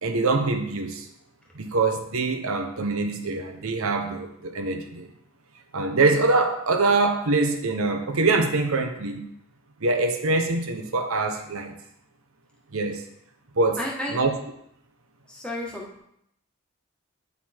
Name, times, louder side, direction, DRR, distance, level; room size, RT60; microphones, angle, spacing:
voice 1, 0.0-1.1 1.5-5.1 5.7-9.2 9.8-11.8 12.7-13.0 13.6-13.8 14.1-14.4, right 3 dB, 85° right, 6 dB, 0.9 m, -24 dB
voice 2, 13.8-14.2 15.3-16.0, left 1 dB, 5° left, -3 dB, 1.3 m, -32 dB
9.3 x 4.1 x 4.4 m, 0.74 s
head